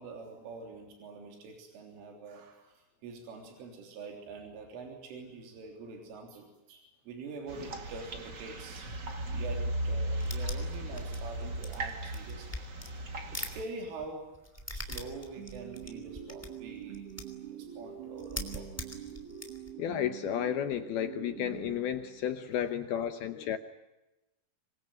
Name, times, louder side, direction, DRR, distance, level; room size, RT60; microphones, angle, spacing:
voice 1, 0.0-17.0 17.5-19.1, right 3 dB, 85° right, 2 dB, 6.0 m, -45 dB
sound 1, 7.5-13.6, right 1 dB, 45° right, 1.4 m, -36 dB
sound 2, 10.1-13.6 13.8-17.5 17.8-17.9 18.1-19.7, left 1 dB, 5° left, 1.7 m, -42 dB
sound 3, 15.4-22.5, right 10 dB, 60° right, 4.1 m, -45 dB
voice 2, 19.8-23.6, left 10 dB, 75° left, 9 dB, 2.4 m, -32 dB
26.0 x 22.0 x 9.3 m, 1.0 s
omnidirectional pair, 5.6 m